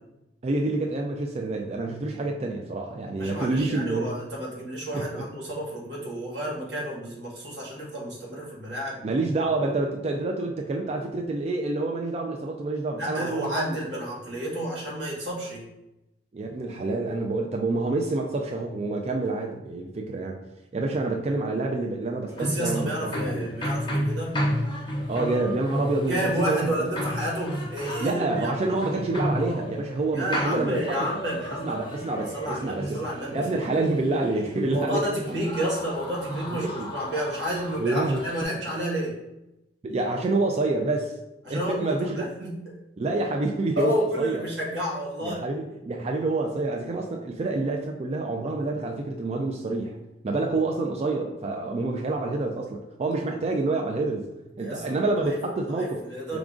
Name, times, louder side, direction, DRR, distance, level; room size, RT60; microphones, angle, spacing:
voice 1, 0.4-4.1 4.9-5.2 9.0-14.0 16.3-20.4 20.7-23.5 25.1-26.9 28.0-31.0 31.6-33.0 33.3-35.1 36.5-36.9 37.8-38.3 39.8-41.1 41.5-42.2 43.0-44.4 45.2-50.0 50.2-54.3 54.6-56.0 56.3-56.4, right 2 dB, 35° right, 1 dB, 0.3 m, -27 dB
voice 2, 3.2-9.0 13.0-15.7 22.4-24.4 26.0-28.5 30.1-33.8 34.6-39.2 41.4-42.6 43.8-45.5 54.6-55.4 55.7-56.4, right 1 dB, 85° right, -4 dB, 1.5 m, -31 dB
sound 1, 22.3-38.4, equal, 25° left, 0.6 m, -33 dB
4.8 x 2.4 x 3.6 m, 0.93 s
head